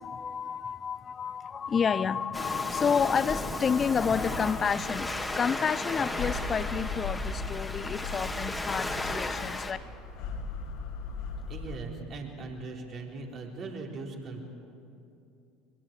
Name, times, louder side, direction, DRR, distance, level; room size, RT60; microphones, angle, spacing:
voice 1, 0.0-9.8, left 6 dB, 35° left, 17 dB, 0.7 m, -30 dB
Waves surf, 2.3-9.7, left 1 dB, 10° left, 2.3 m, -35 dB
sound 1, 3.8-11.8, left 3 dB, 65° left, 2.6 m, -38 dB
voice 2, 11.5-14.4, right 3 dB, 45° right, 0 dB, 4.1 m, -39 dB
23.0 x 22.0 x 7.7 m, 2.6 s
hypercardioid pair, 75°, 0 cm